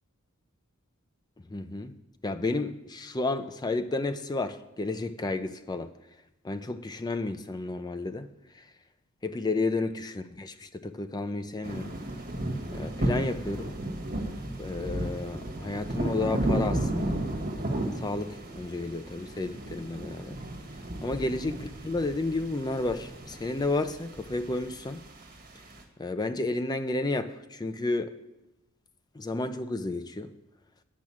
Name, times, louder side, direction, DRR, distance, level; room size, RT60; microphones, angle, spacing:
voice 1, 1.5-1.9 2.2-5.9 6.4-8.7 9.2-12.0 12.7-13.7 14.6-17.2 18.0-20.4 21.0-25.0 26.0-28.2 29.1-30.3, left 2 dB, 20° left, 0.5 m, -32 dB
sound 1, 11.6-25.8, right 1 dB, 45° right, 1.6 m, -34 dB
9.3 x 6.1 x 8.5 m
head